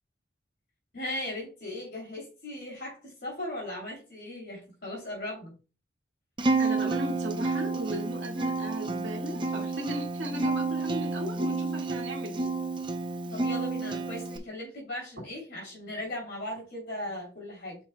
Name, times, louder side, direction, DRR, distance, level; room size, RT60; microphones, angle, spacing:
voice 1, 0.9-5.5 13.3-17.8, left 1 dB, 55° left, -2 dB, 3.0 m, -38 dB
Acoustic guitar, 6.4-14.4, right 3 dB, 25° right, 0.6 m, -30 dB
voice 2, 6.6-12.5, right 1 dB, 75° right, -1 dB, 1.8 m, -36 dB
8.9 x 5.2 x 2.2 m, 0.33 s
head